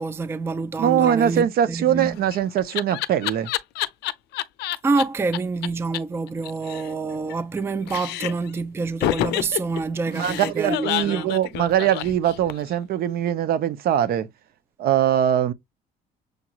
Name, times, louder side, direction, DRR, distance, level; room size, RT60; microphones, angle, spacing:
voice 1, 0.0-2.2 4.8-11.3, right 4 dB, 15° right, 0.4 m, -27 dB
voice 2, 0.8-3.5 10.1-14.3 14.8-15.5, right 10 dB, 65° right, 0.6 m, -22 dB
Laughter, 1.9-5.0 5.3-5.4 5.6-5.7 5.9-6.0 6.3-7.6 7.9-8.5 9.0-12.8, left 15 dB, 80° left, 0.5 m, -28 dB
6.5 x 2.4 x 2.9 m
cardioid pair, 110°, 17 cm